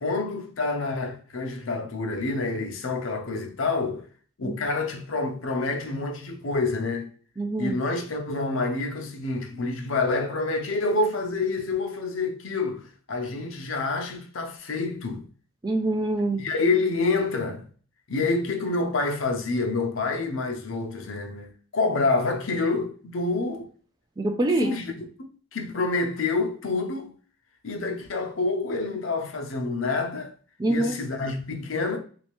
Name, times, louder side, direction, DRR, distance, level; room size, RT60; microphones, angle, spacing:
voice 1, 0.0-4.1 4.4-7.1 7.6-15.3 16.4-17.7 18.1-23.7 24.6-24.8 25.5-27.1 27.6-30.3 30.7-32.0, left 3 dB, 75° left, 0.7 m, -27 dB
voice 2, 7.4-7.8 15.6-16.4 24.2-24.7 30.6-31.0, right 2 dB, 20° right, 0.4 m, -25 dB
3.2 x 2.8 x 3.0 m
head